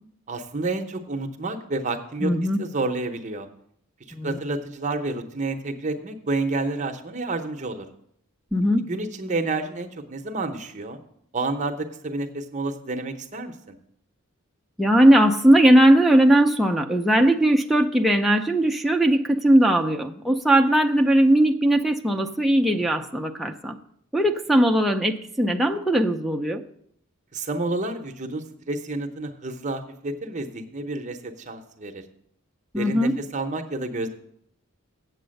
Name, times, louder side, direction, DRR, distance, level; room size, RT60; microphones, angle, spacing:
voice 1, 0.3-2.3 2.6-3.5 4.2-7.9 8.9-11.0 11.3-13.7 27.3-32.0 32.7-34.1, right 2 dB, 35° right, 6 dB, 0.8 m, -29 dB
voice 2, 2.2-2.6 4.1-4.4 8.5-8.9 14.8-23.8 24.1-26.6 32.7-33.2, right 1 dB, ahead, 1 dB, 0.5 m, -19 dB
8.0 x 7.7 x 6.4 m, 0.69 s
head